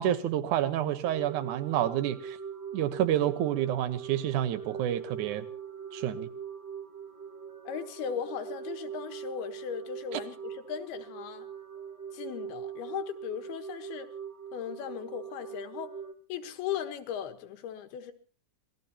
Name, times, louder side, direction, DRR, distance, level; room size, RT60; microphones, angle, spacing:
voice 1, 0.0-2.4 2.7-5.5 5.9-6.3 10.1-10.2, right 11 dB, 65° right, 2.2 m, -29 dB
sound 1, 1.0-16.1, right 7 dB, 40° right, 1.6 m, -42 dB
voice 2, 7.7-11.5 12.1-14.1 14.5-15.9 16.3-18.1, left 9 dB, 85° left, 3.3 m, -37 dB
26.5 x 19.0 x 2.9 m
omnidirectional pair, 4.4 m